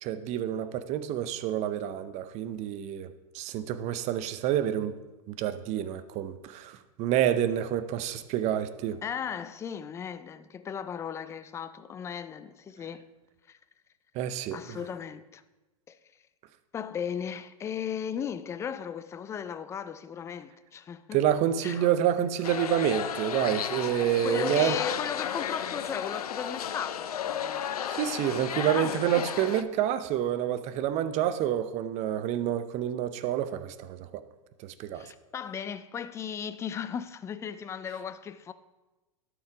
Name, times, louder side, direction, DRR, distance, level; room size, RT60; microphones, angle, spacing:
voice 1, 0.0-5.0 5.3-9.0 14.1-14.8 21.1-24.8 28.0-34.2 34.6-35.1, right 10 dB, 40° right, 0.6 m, -28 dB
voice 2, 9.0-13.1 13.5-13.6 14.5-15.4 15.9-16.0 16.7-21.2 21.6-22.7 24.2-27.7 28.7-29.3 34.9-38.5, left 7 dB, 15° left, 0.3 m, -36 dB
sound 1, 22.4-29.6, left 8 dB, 85° left, 0.5 m, -33 dB
11.5 x 4.7 x 4.9 m
hypercardioid pair, 110°, 19 cm